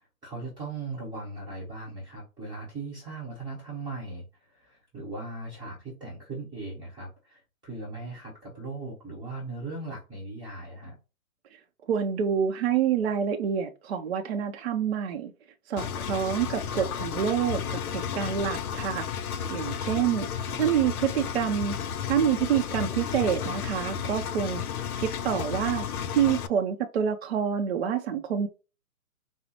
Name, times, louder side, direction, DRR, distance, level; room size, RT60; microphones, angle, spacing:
voice 1, 0.2-11.0 20.4-20.6, right 3 dB, 10° right, 0.9 m, -38 dB
voice 2, 11.9-15.3 15.7-19.1 19.5-21.8 22.1-24.6 25.0-25.9 26.1-28.5, right 8 dB, 45° right, 0.5 m, -27 dB
Engine, 15.8-26.5, left 8 dB, 75° left, 0.6 m, -33 dB
5.1 x 2.0 x 2.9 m
hypercardioid pair, 145°, 45 cm